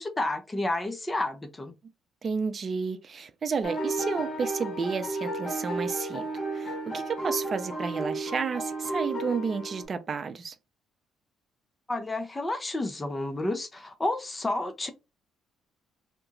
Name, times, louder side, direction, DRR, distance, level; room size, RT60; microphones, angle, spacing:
voice 1, 0.0-1.7 11.9-14.9, left 2 dB, 20° left, 0.6 m, -30 dB
voice 2, 2.2-10.6, right 5 dB, 45° right, 0.6 m, -31 dB
sound 1, 3.6-9.8, right 2 dB, 45° left, 1.6 m, -33 dB
2.9 x 2.2 x 3.9 m
supercardioid pair, 60°, 0 cm